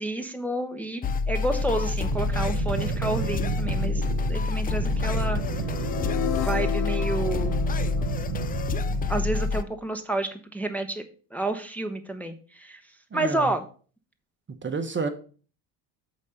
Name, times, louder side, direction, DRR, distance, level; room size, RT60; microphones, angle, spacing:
voice 1, 0.0-4.0 4.3-5.4 6.4-7.5 9.1-11.0 11.3-12.8 13.1-13.6, right 2 dB, 5° left, 4 dB, 0.9 m, -30 dB
sound 1, 1.0-9.6, left 4 dB, 20° left, 0.3 m, -28 dB
sound 2, 1.6-9.6, right 15 dB, 65° right, 0.6 m, -33 dB
sound 3, 5.3-9.4, left 12 dB, 85° left, 0.9 m, -34 dB
voice 2, 13.1-13.5 14.5-15.1, right 4 dB, 25° right, 8 dB, 0.9 m, -30 dB
8.2 x 4.0 x 6.4 m, 0.40 s
supercardioid pair, 90°, 49 cm